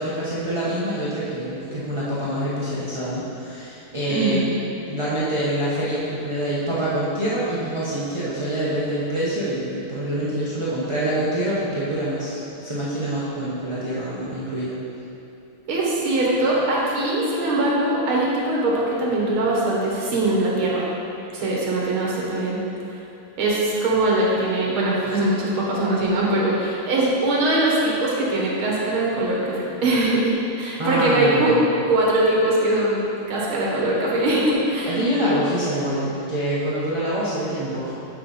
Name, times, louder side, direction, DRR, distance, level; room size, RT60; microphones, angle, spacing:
voice 1, 0.0-4.5 4.9-14.8 30.8-31.7 34.8-37.9, right 1 dB, 25° right, -10 dB, 0.6 m, -25 dB
voice 2, 4.1-4.5 15.7-20.9 21.3-22.6 22.9-23.0 23.4-31.5 31.8-35.0, right 2 dB, 90° right, -4 dB, 2.2 m, -22 dB
8.6 x 4.7 x 4.2 m, 2.8 s
omnidirectional pair, 2.2 m